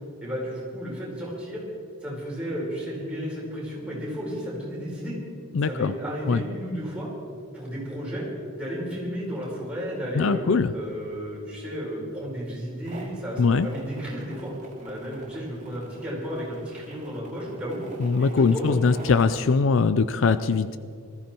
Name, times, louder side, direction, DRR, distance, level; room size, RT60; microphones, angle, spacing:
voice 1, 0.2-1.6 2.0-5.1 5.6-7.1 7.5-8.3 8.5-10.5 10.7-14.5 14.8-17.8 18.2-19.0, equal, 5° right, -6 dB, 4.7 m, -33 dB
voice 2, 5.5-5.9 6.3-6.4 10.2-10.7 13.4-13.7 18.0-20.8, left 4 dB, 60° left, 13 dB, 0.4 m, -21 dB
sound 1, 12.8-19.2, right 2 dB, 35° right, 2.4 m, -46 dB
20.0 x 14.0 x 4.5 m, 2.3 s
head